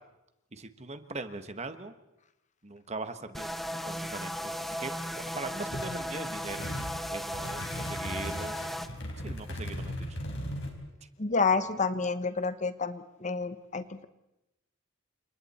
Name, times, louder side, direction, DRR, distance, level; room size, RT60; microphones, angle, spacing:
voice 1, 0.5-1.9 2.6-3.5 3.8-6.7 7.1-8.6 9.2-10.1, right 3 dB, 30° right, 10 dB, 1.3 m, -40 dB
sound 1, 3.3-8.9, equal, ahead, 0.9 m, -36 dB
sound 2, 5.7-6.0 6.4-7.0 7.3-10.7, left 1 dB, 60° left, 4.6 m, -38 dB
voice 2, 11.2-14.1, left 4 dB, 35° left, 12 dB, 0.9 m, -29 dB
29.5 x 26.5 x 4.3 m, 0.92 s
head